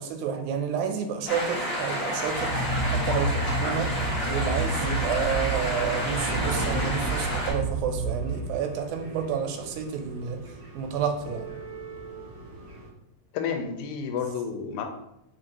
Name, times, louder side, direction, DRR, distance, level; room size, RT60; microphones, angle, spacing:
voice 1, 0.0-3.9 4.3-10.4 10.8-11.5, right 7 dB, 85° right, 5 dB, 1.9 m, -30 dB
sound 1, 1.3-7.5, equal, 75° left, 0.5 m, -30 dB
sound 2, 1.5-12.9, right 2 dB, 65° right, 0.9 m, -42 dB
sound 3, 2.2-8.8, right 2 dB, 55° left, 1.1 m, -30 dB
voice 2, 13.3-14.8, left 6 dB, 90° left, 4 dB, 2.0 m, -30 dB
4.5 x 2.6 x 2.8 m, 0.84 s
omnidirectional pair, 3.3 m